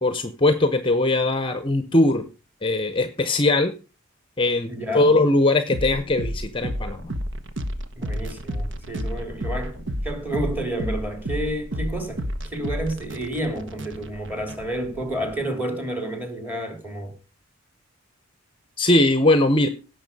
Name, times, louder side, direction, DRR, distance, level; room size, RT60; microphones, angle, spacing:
voice 1, 0.0-2.3 2.6-3.7 4.4-4.7 4.9-7.1 18.8-19.7, left 2 dB, 25° left, 0.8 m, -20 dB
voice 2, 4.7-5.2 8.0-17.1, right 1 dB, 10° right, 2.8 m, -30 dB
sound 1, 5.7-15.3, equal, 60° right, 1.3 m, -31 dB
17.0 x 6.6 x 5.4 m
head